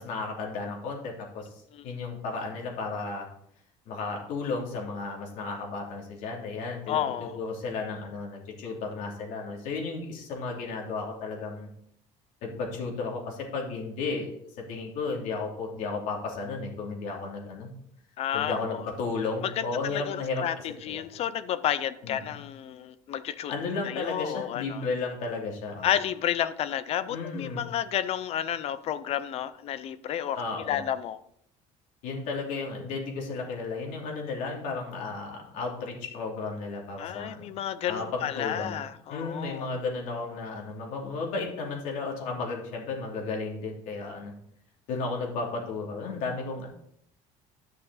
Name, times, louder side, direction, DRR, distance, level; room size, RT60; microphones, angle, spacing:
voice 1, 0.0-1.5 1.8-3.3 3.9-11.7 12.4-14.3 14.6-17.7 18.3-21.0 22.0-22.3 23.5-25.9 27.1-27.6 30.3-30.8 32.0-37.5 37.9-38.8 39.1-44.3 44.9-46.7, left 4 dB, 70° left, -1 dB, 3.0 m, -34 dB
voice 2, 6.9-7.4 18.2-18.8 19.4-23.5 23.8-24.8 25.8-31.2 37.0-39.7, left 10 dB, 50° left, 14 dB, 0.6 m, -31 dB
11.0 x 6.4 x 4.1 m, 0.70 s
cardioid pair, 135°, 13 cm